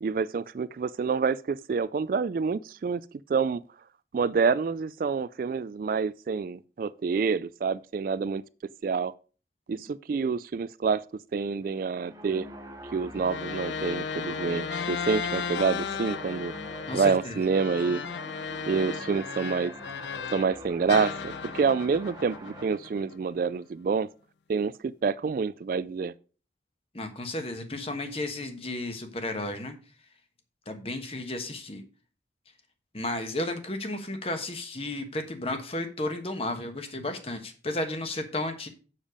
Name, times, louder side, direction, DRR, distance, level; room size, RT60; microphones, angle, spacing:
voice 1, 0.0-3.0 3.3-3.6 4.1-8.4 8.8-9.1 9.7-11.0 11.3-12.5 12.9-16.5 16.9-18.0 18.7-19.7 20.3-24.1 24.5-26.1, right 5 dB, 50° right, 0.3 m, -27 dB
sound 1, 11.6-22.7, right 1 dB, 20° right, 1.0 m, -45 dB
sound 2, 13.1-20.5 20.9-23.3, left 6 dB, 75° left, 0.5 m, -35 dB
voice 2, 16.9-17.4 26.9-30.1 30.6-31.8 32.9-38.7, left 2 dB, 35° left, 1.3 m, -33 dB
7.3 x 6.8 x 5.0 m
head